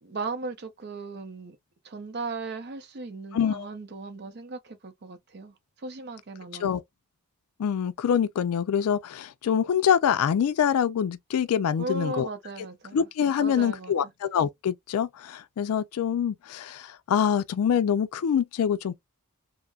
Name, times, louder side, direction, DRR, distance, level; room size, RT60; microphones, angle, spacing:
voice 1, 0.0-1.6 1.8-6.7 11.8-13.1 13.4-14.1, right 3 dB, 45° right, 0.5 m, -37 dB
voice 2, 3.3-3.7 6.6-6.8 7.6-12.3 12.9-18.9, left 8 dB, 85° left, 0.3 m, -25 dB
3.4 x 2.0 x 2.3 m
head